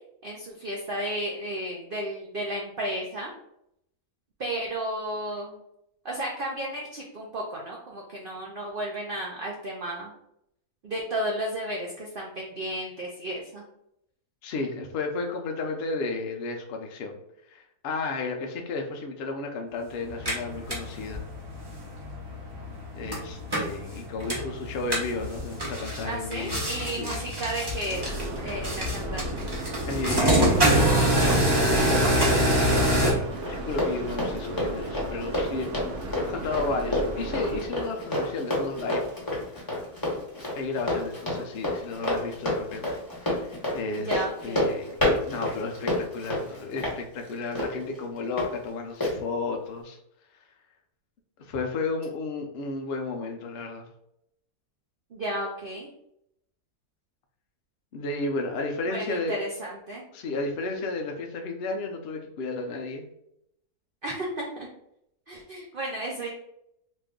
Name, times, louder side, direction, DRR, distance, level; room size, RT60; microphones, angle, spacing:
voice 1, 0.2-3.3 4.4-5.6 6.0-10.1 10.8-13.6 26.0-28.1 28.4-29.5 44.0-44.7 55.1-55.9 58.9-60.0 64.0-64.7 65.3-66.3, right 1 dB, 65° right, -3 dB, 0.5 m, -33 dB
voice 2, 14.4-17.2 17.5-21.2 22.9-27.2 29.9-31.3 32.3-39.1 40.5-43.0 43.3-44.9 45.3-50.0 51.4-53.9 57.9-59.4 60.1-63.0, left 3 dB, 75° left, 3 dB, 0.5 m, -33 dB
sound 1, 20.1-33.1, right 1 dB, 20° right, 0.7 m, -26 dB
sound 2, 27.9-37.7, right 1 dB, 80° right, 1.1 m, -35 dB
Run, 30.7-48.5 49.0-49.1, left 1 dB, 15° left, 0.9 m, -30 dB
3.1 x 2.5 x 3.5 m, 0.76 s
omnidirectional pair, 1.7 m